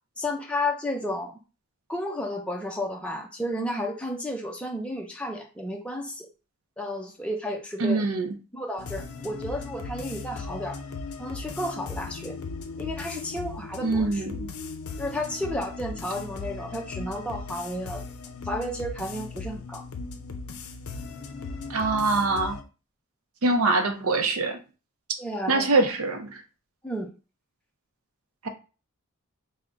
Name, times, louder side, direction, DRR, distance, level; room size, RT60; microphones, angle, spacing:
voice 1, 0.2-1.4 1.9-6.3 6.8-8.0 8.5-10.8 11.2-12.4 12.8-14.2 15.0-18.0 18.4-19.8 25.2-25.7 26.8-27.1, left 1 dB, 5° left, 0.5 m, -32 dB
voice 2, 7.8-8.4 13.8-14.5 21.7-22.6 23.4-24.6 25.5-26.4 28.4-28.5, right 3 dB, 70° right, 0.6 m, -24 dB
sound 1, 8.8-22.6, left 4 dB, 75° left, 0.5 m, -37 dB
3.5 x 2.1 x 3.8 m
head